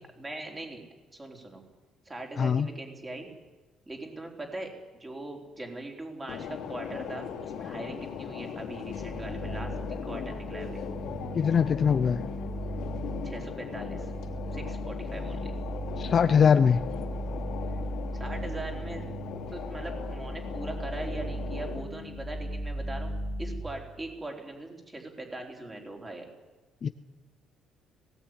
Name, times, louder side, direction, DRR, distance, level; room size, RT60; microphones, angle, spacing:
voice 1, 0.2-0.8 1.1-1.6 2.0-3.3 3.9-4.7 5.0-10.8 13.2-14.1 14.5-15.5 18.1-19.0 19.5-23.1 23.4-26.3, right 2 dB, 15° right, 1 dB, 4.1 m, -40 dB
voice 2, 2.4-2.7 11.3-12.2 16.0-16.8 26.8-26.9, left 6 dB, 35° left, 11 dB, 0.6 m, -22 dB
sound 1, 6.3-21.8, left 8 dB, 65° left, 3.2 m, -39 dB
sound 2, 8.9-23.6, equal, 50° left, 2.6 m, -37 dB
19.0 x 17.5 x 9.8 m, 1.2 s
cardioid pair, 165°, 0 cm